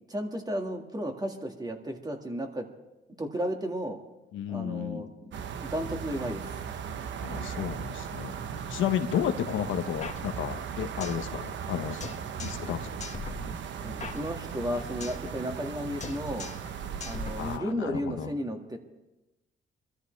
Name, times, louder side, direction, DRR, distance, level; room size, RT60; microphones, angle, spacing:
voice 1, 0.1-2.7 3.2-4.0 4.5-6.6 13.8-16.5 17.0-18.8, equal, 20° right, 3 dB, 2.1 m, -34 dB
voice 2, 4.3-5.1 7.2-8.3 8.7-12.0 12.4-13.1 17.4-18.3, left 9 dB, 80° left, 7 dB, 1.1 m, -32 dB
sound 1, 5.3-17.6, right 7 dB, 70° right, 1.0 m, -37 dB
sound 2, 10.0-11.3 11.5-11.6 12.0-12.7 13.0-15.3 15.5-15.7 16.0-16.7 17.0-18.0, left 4 dB, 35° left, 1.6 m, -41 dB
23.0 x 13.5 x 3.4 m, 1.0 s
cardioid pair, 90°, 20 cm